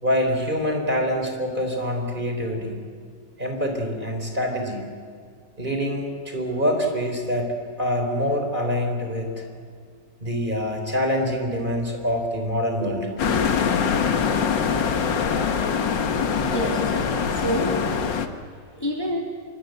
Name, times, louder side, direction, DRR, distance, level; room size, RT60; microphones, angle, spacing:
voice 1, 0.0-2.8 3.4-4.8 5.6-9.3 10.2-13.5, equal, 25° right, 3 dB, 4.5 m, -25 dB
sound 1, 13.2-18.3, left 6 dB, 80° left, 2.1 m, -23 dB
voice 2, 16.3-17.8 18.8-19.2, equal, 10° left, -1 dB, 2.9 m, -28 dB
28.0 x 23.5 x 8.0 m, 2.1 s
omnidirectional pair, 2.0 m